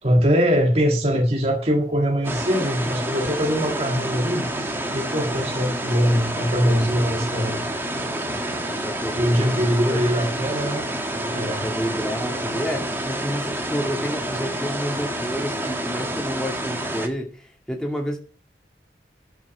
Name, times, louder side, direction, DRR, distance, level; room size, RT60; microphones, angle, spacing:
voice 1, 0.0-4.5 4.9-7.6 8.3-8.4 9.2-10.8 11.3-11.7, equal, 35° right, 2 dB, 1.7 m, -22 dB
sound 1, 2.2-17.1, right 1 dB, 15° right, 1.6 m, -28 dB
voice 2, 8.6-10.0 11.0-18.2, equal, 5° left, 0 dB, 2.2 m, -30 dB
12.0 x 6.0 x 7.2 m, 0.38 s
head